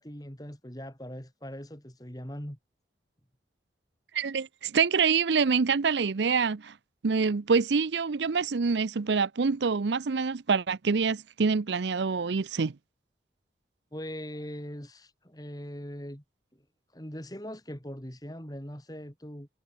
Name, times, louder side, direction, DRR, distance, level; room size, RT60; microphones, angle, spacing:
voice 1, 0.0-2.6 13.9-16.2 16.9-19.5, equal, 20° left, 3.8 m, -41 dB
voice 2, 4.1-6.7 7.0-12.8, right 5 dB, 80° right, 0.6 m, -26 dB
head